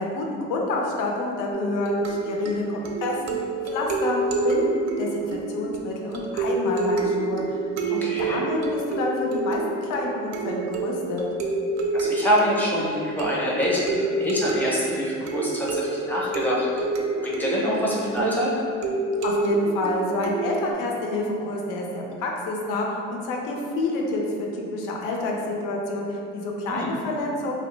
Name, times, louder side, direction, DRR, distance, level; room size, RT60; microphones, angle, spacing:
voice 1, 0.0-3.4 3.6-4.2 4.4-7.6 7.9-11.2 19.2-27.5, left 2 dB, 80° left, 0 dB, 0.5 m, -28 dB
sound 1, 1.5-20.7, right 3 dB, 60° right, 0.4 m, -28 dB
voice 2, 8.0-8.4 11.9-16.8 17.2-18.5 26.7-26.9, equal, 5° left, -5 dB, 0.5 m, -25 dB
2.7 x 2.0 x 3.1 m, 2.5 s
cardioid pair, 110°, 31 cm